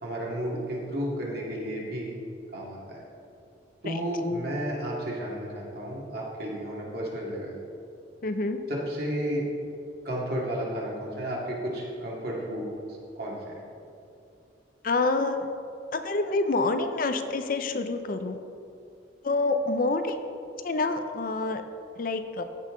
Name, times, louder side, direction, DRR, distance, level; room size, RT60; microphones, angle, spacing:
voice 1, 0.0-2.1 2.5-3.0 3.8-7.5 8.7-9.4 10.0-12.7 13.1-13.4, equal, 55° right, -4 dB, 2.2 m, -32 dB
voice 2, 8.2-8.6 14.8-15.4 15.9-18.4 19.2-20.2 20.6-21.6 22.0-22.4, left 3 dB, 50° left, 8 dB, 0.5 m, -27 dB
15.0 x 5.6 x 3.8 m, 2.6 s
head